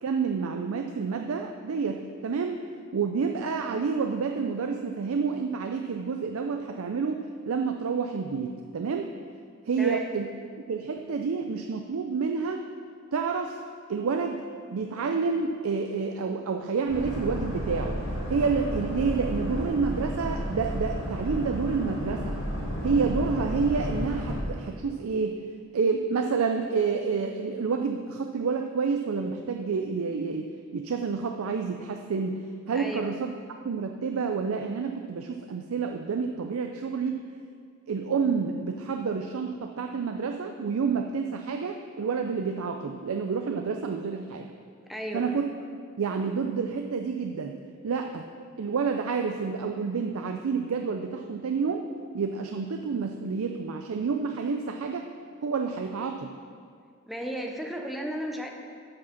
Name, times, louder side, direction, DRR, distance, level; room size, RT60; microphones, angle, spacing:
voice 1, 0.0-2.6 2.9-9.1 9.7-10.3 10.7-12.6 13.1-13.6 13.9-14.4 14.7-18.0 18.3-22.4 22.8-25.4 25.7-32.4 32.7-33.3 33.6-37.2 37.9-44.5 45.1-45.5 46.0-47.6 47.8-48.2 48.6-51.8 52.1-55.1 55.4-56.3, right 5 dB, 80° right, 4 dB, 0.4 m, -29 dB
Boat Water vehicle, 16.9-24.4, equal, 60° left, 2.3 m, -32 dB
voice 2, 44.9-45.4 57.1-58.5, equal, ahead, 2 dB, 0.7 m, -34 dB
7.7 x 6.1 x 5.8 m, 2.2 s
head